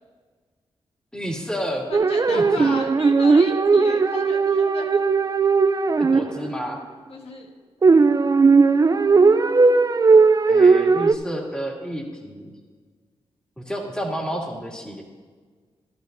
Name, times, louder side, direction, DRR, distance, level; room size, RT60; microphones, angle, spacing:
voice 1, 1.1-1.9 2.3-2.9 6.0-6.8 10.5-12.5 13.6-15.0, equal, 10° left, -2 dB, 2.6 m, -30 dB
voice 2, 1.9-5.0 7.1-7.5, left 3 dB, 70° left, 1 dB, 1.5 m, -35 dB
sound 1, 1.9-6.5 7.8-11.1, right 4 dB, 35° right, 0.5 m, -17 dB
14.5 x 11.5 x 2.7 m, 1.5 s
cardioid pair, 60°, 10 cm